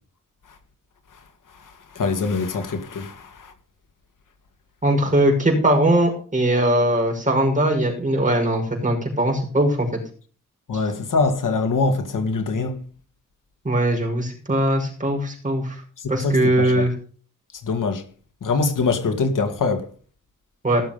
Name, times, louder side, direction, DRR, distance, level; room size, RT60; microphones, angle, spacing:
voice 1, 1.9-3.5 10.7-12.8 16.0-16.8 17.6-18.0 18.4-19.9, left 4 dB, 85° left, 2.1 m, -23 dB
voice 2, 4.8-10.0 13.6-15.8 16.1-16.9 20.6-20.8, right 1 dB, 25° right, 5.9 m, -20 dB
17.0 x 7.2 x 5.3 m
wide cardioid pair, 130°, 31 cm